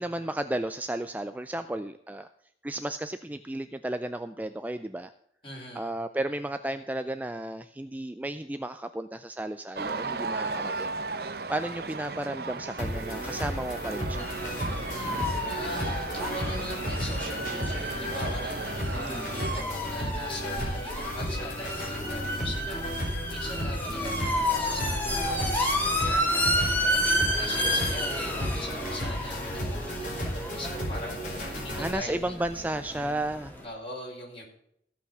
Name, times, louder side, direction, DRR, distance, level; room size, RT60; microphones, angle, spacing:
voice 1, 0.0-2.3 2.6-5.1 5.7-14.3 18.8-19.3 31.7-33.5, right 1 dB, 10° right, 10 dB, 0.3 m, -33 dB
voice 2, 5.4-5.9 14.9-32.3 32.9-33.0 33.6-34.5, left 1 dB, 30° left, -2 dB, 4.7 m, -41 dB
sound 1, 9.8-19.6, right 3 dB, 55° right, 0.8 m, -36 dB
sound 2, 12.8-31.9, equal, 45° left, 4.3 m, -34 dB
sound 3, 14.2-33.6, equal, 10° left, 2.2 m, -31 dB
15.5 x 5.8 x 7.1 m, 0.72 s
head